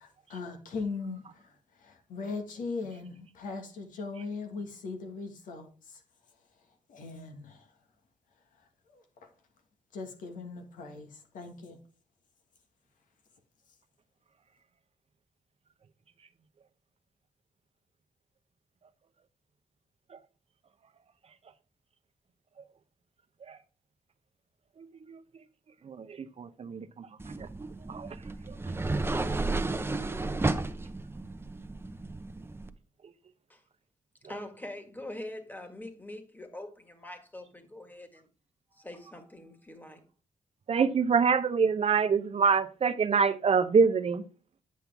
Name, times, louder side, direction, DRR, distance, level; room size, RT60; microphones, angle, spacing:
voice 1, 0.0-6.0 6.9-7.7 8.9-9.3 9.9-11.8, left 4 dB, 90° left, 1.7 m, -39 dB
voice 2, 24.8-25.2 25.8-27.5 27.9-28.2 28.5-28.6 40.7-44.2, right 5 dB, 50° right, 0.8 m, -26 dB
sound 1, 27.2-32.7, right 3 dB, 20° right, 0.8 m, -33 dB
voice 3, 34.3-38.3 38.7-40.0, left 1 dB, 15° left, 1.8 m, -43 dB
9.5 x 5.6 x 3.5 m
cardioid pair, 75°, 13 cm